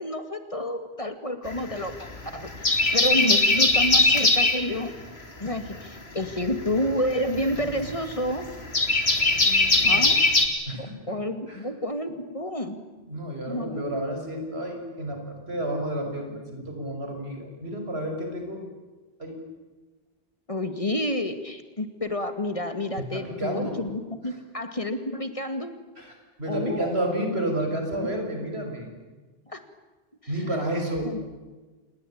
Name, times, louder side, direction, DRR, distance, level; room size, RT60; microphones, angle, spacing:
voice 1, 0.0-4.9 5.4-8.5 9.8-10.2 10.7-12.8 13.5-14.0 20.5-25.7 26.5-27.1 27.6-27.8 29.4-29.6 30.2-30.8 31.0-31.3, left 1 dB, 35° left, 9 dB, 2.3 m, -30 dB
sound 1, 1.5-2.1 2.5-4.6 6.3-10.5, left 2 dB, 80° left, 3.2 m, -21 dB
voice 2, 9.3-10.1 10.7-10.9 11.5-11.7 13.1-18.6 19.2-19.4 23.1-23.9 26.0-26.1 26.4-28.9 30.3-31.1, right 1 dB, 90° right, 3 dB, 6.4 m, -31 dB
28.0 x 21.0 x 8.8 m, 1.2 s
omnidirectional pair, 1.0 m